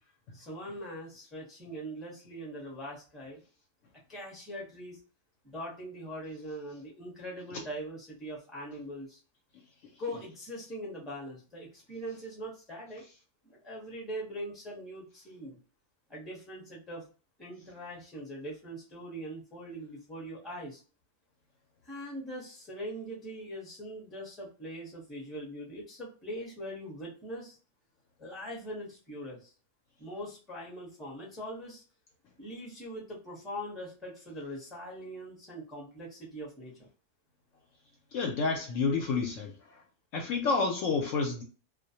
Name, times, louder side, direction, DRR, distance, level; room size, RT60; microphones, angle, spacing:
voice 1, 0.3-3.4 4.1-5.0 5.4-9.2 10.0-13.0 13.4-15.6 16.1-17.1 17.4-20.8 21.8-27.6 28.2-29.5 30.0-31.8 32.4-36.9, equal, ahead, 0.7 m, -42 dB
voice 2, 38.1-39.5 40.1-41.4, left 4 dB, 70° left, 0.8 m, -29 dB
2.4 x 2.1 x 2.7 m
omnidirectional pair, 1.5 m